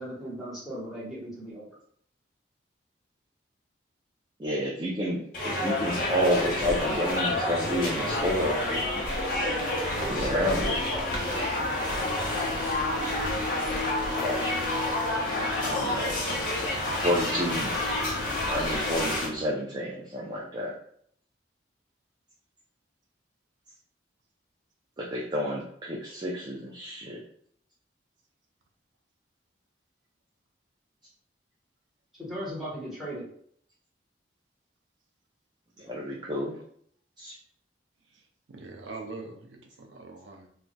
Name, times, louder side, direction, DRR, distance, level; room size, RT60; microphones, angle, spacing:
voice 1, 0.0-1.7 32.2-33.3, equal, ahead, -8 dB, 1.0 m, -37 dB
voice 2, 4.4-9.0 10.1-10.8 14.1-14.5 15.6-16.2 17.0-17.7 18.5-20.7 25.0-27.2 35.8-36.6 37.2-37.3, equal, 25° right, -4 dB, 0.4 m, -30 dB
sound 1, 5.3-19.3, left 1 dB, 50° left, 0.8 m, -29 dB
sound 2, 5.8-19.5, left 3 dB, 80° left, 0.5 m, -36 dB
voice 3, 38.0-40.5, right 3 dB, 90° right, 2 dB, 0.5 m, -44 dB
2.3 x 2.1 x 3.9 m, 0.63 s
head